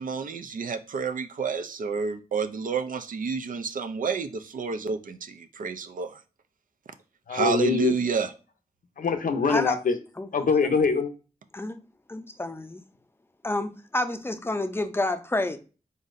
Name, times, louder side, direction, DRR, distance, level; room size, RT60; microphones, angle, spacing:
voice 1, 0.0-6.2 7.3-8.3, right 5 dB, 75° right, 0.5 m, -29 dB
voice 2, 7.3-7.9 9.0-10.0 10.3-11.1, left 5 dB, 75° left, 0.6 m, -24 dB
voice 3, 12.1-12.8 13.4-15.6, left 2 dB, 15° left, 0.5 m, -29 dB
4.0 x 3.9 x 2.5 m
wide cardioid pair, 80°, 14 cm